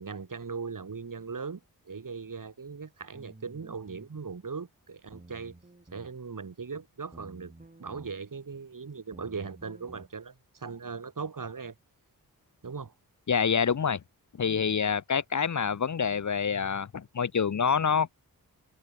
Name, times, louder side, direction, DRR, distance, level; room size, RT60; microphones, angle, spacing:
voice 1, 0.0-5.5 5.9-7.5 7.8-11.7 12.6-12.9, right 5 dB, 55° right, 7.6 m, -39 dB
sound 1, 3.1-4.1 5.1-6.1 7.1-8.1 9.1-10.1, right 2 dB, 25° right, 6.7 m, -51 dB
voice 2, 13.3-14.0 14.4-18.1, left 6 dB, 50° left, 1.0 m, -27 dB
cardioid pair, 70°, 37 cm